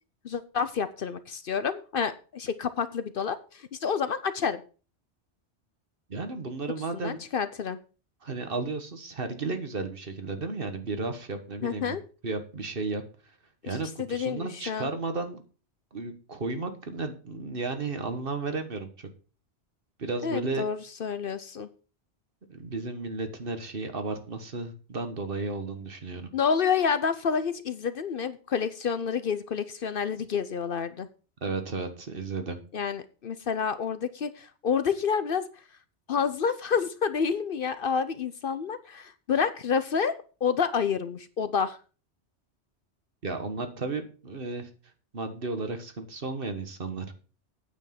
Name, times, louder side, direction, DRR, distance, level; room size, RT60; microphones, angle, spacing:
voice 1, 0.2-4.6 6.9-7.8 11.6-12.0 13.6-14.9 20.2-21.7 26.3-31.1 32.7-35.5 36.1-40.2 40.4-41.8, left 6 dB, 55° left, 13 dB, 0.8 m, -29 dB
voice 2, 6.1-7.2 8.2-12.0 12.2-13.0 13.6-15.4 15.9-19.1 20.0-20.6 22.5-26.3 31.4-32.6 43.2-44.7 45.1-47.1, right 3 dB, 55° right, 7 dB, 1.6 m, -33 dB
9.1 x 7.3 x 5.8 m, 0.37 s
omnidirectional pair, 1.2 m